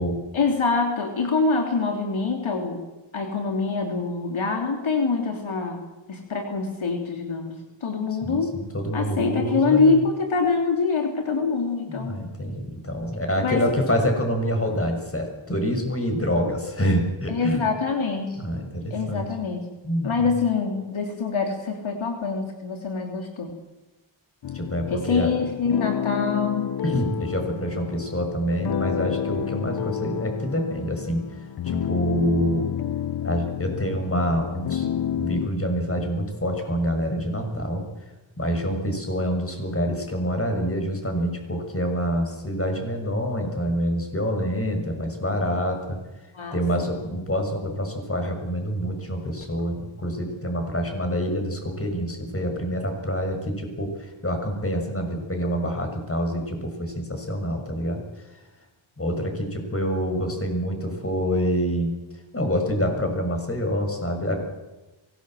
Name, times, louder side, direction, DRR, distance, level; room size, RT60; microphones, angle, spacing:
voice 1, 0.3-2.8 3.1-5.8 6.1-7.5 7.8-8.5 8.9-12.2 13.4-13.6 17.3-18.4 18.9-19.6 20.0-23.5 24.9-26.7 46.3-46.9, left 4 dB, 70° left, 3 dB, 3.2 m, -25 dB
voice 2, 8.2-10.0 11.9-17.6 18.4-19.3 19.8-20.3 24.5-25.3 26.8-31.2 31.6-32.7 33.2-37.8 38.4-46.0 46.5-58.0 59.0-61.9 62.3-64.4, equal, 25° left, 4 dB, 6.5 m, -26 dB
sound 1, 24.4-35.5, left 10 dB, 50° left, 0.6 m, -30 dB
23.5 x 18.0 x 7.7 m, 1.1 s
cardioid pair, 60°, 49 cm